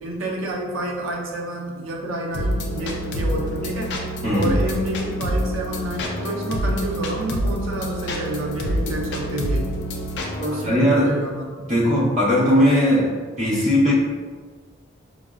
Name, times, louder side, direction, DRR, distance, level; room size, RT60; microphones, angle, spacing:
voice 1, 0.0-3.9 4.3-9.8 10.4-11.5, right 1 dB, 90° right, -1 dB, 0.6 m, -29 dB
sound 1, 2.3-10.7, equal, 55° left, 0.4 m, -27 dB
voice 2, 4.2-4.6 10.6-11.2 11.7-13.9, equal, 35° right, -7 dB, 0.8 m, -19 dB
4.1 x 2.0 x 2.4 m, 1.5 s
head